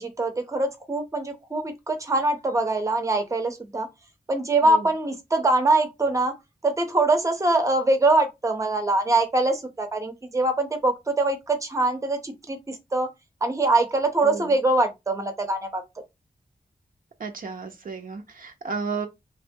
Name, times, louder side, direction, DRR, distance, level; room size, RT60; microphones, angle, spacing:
voice 1, 0.0-3.9 4.3-6.3 6.6-13.1 13.4-15.8, right 2 dB, 20° right, 0.6 m, -23 dB
voice 2, 14.2-14.5 17.2-19.1, right 5 dB, 65° right, 0.5 m, -33 dB
2.9 x 2.2 x 2.6 m
wide cardioid pair, 105°, 16 cm